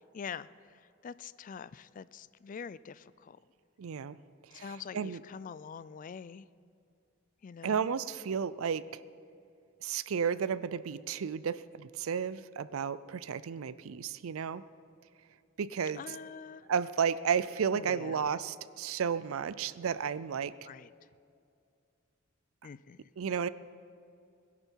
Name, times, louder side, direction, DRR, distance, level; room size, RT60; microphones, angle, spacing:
voice 1, 0.1-3.4 4.5-6.5 7.4-7.9 16.0-16.7 17.7-18.3 20.3-20.4 20.6-20.9 22.6-23.1, left 6 dB, 40° left, 17 dB, 0.3 m, -45 dB
voice 2, 3.8-4.2 4.5-4.7 4.9-5.2 7.6-8.8 9.8-14.6 15.6-16.0 16.7-20.5 23.2-23.5, right 7 dB, 80° right, 16 dB, 0.5 m, -32 dB
20.5 x 11.0 x 4.6 m, 2.4 s
head